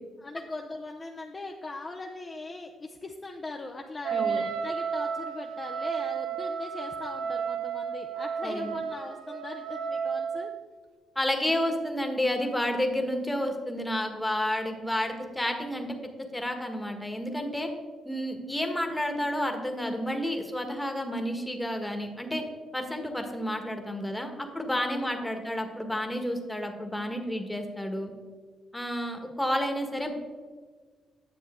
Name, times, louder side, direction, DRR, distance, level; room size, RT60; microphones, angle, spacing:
voice 1, 0.2-10.5 24.8-25.3, left 2 dB, 25° left, 2 dB, 0.6 m, -40 dB
Wind instrument woodwind instrument, 4.0-10.7, right 6 dB, 85° right, 0.7 m, -32 dB
voice 2, 4.1-4.5 8.4-8.8 11.1-16.0 16.3-17.7 18.0-22.4 22.7-28.1 28.7-30.1, left 1 dB, 5° left, 4 dB, 1.3 m, -30 dB
9.7 x 6.9 x 3.6 m, 1.5 s
cardioid pair, 90°, 0 cm